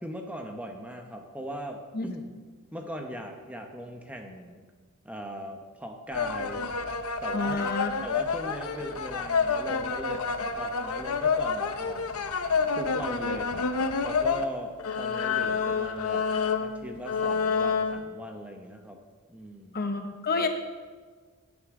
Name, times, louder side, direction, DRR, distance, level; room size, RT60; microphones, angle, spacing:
voice 1, 0.0-2.2 2.7-4.6 5.0-6.6 7.2-10.3 10.5-12.1 12.7-13.7 14.0-16.3 16.6-19.0 19.3-19.8, equal, 5° right, 3 dB, 1.0 m, -39 dB
sound 1, 6.1-14.4 14.8-18.0, left 5 dB, 75° left, 0.9 m, -28 dB
voice 2, 7.3-7.9 19.7-20.5, left 3 dB, 45° left, 5 dB, 1.0 m, -29 dB
17.0 x 9.8 x 3.8 m, 1.5 s
head